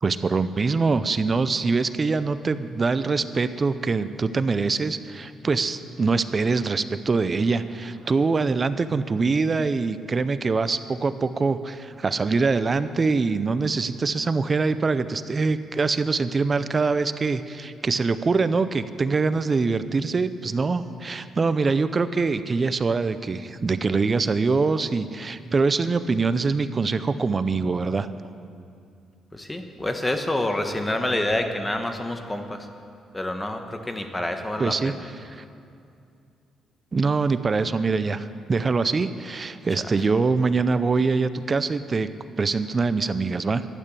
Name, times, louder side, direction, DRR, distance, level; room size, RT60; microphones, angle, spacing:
voice 1, 0.0-28.1 34.6-34.9 35.2-35.4 36.9-42.1 42.4-43.7, right 4 dB, 35° right, 12 dB, 0.5 m, -24 dB
voice 2, 29.3-32.7 33.1-35.0, left 1 dB, 15° left, 6 dB, 1.3 m, -27 dB
12.0 x 9.0 x 8.3 m, 2.5 s
cardioid pair, 90°, 0 cm